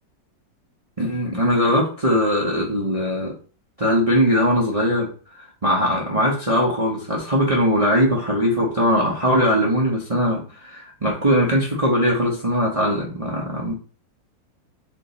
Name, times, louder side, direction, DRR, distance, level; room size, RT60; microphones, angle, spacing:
voice 1, 1.0-3.3 3.8-5.1 5.3-13.7, equal, 35° right, -3 dB, 0.6 m, -20 dB
5.0 x 2.7 x 3.9 m, 0.39 s
omnidirectional pair, 2.0 m